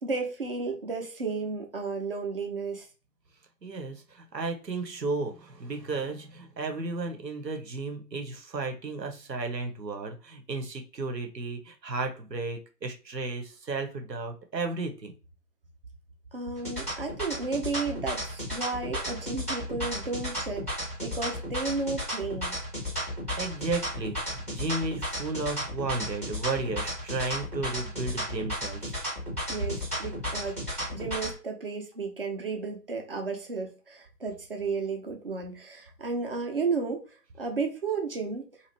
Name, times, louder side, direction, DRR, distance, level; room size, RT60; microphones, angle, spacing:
voice 1, 0.0-2.9 16.3-22.6 29.5-30.6 30.9-37.1 37.4-38.4, right 4 dB, 35° right, 3 dB, 0.6 m, -33 dB
voice 2, 3.6-15.1 23.4-29.0, right 3 dB, 90° right, 5 dB, 1.0 m, -33 dB
sound 1, 16.5-31.3, equal, 10° left, 0.6 m, -34 dB
2.8 x 2.4 x 3.3 m, 0.34 s
figure-of-eight pair, 145°, 49 cm